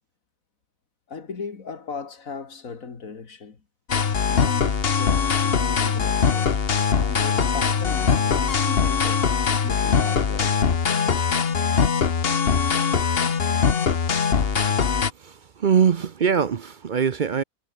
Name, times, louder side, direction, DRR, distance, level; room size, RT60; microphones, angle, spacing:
voice 1, 1.1-3.6 4.3-6.5 6.9-9.3 9.6-10.7 13.5-13.6, left 5 dB, 65° left, 2.6 m, -37 dB
sound 1, 3.9-15.1, left 6 dB, 45° left, 1.3 m, -21 dB
voice 2, 15.2-17.4, right 7 dB, 45° right, 0.6 m, -22 dB
omnidirectional pair, 1.5 m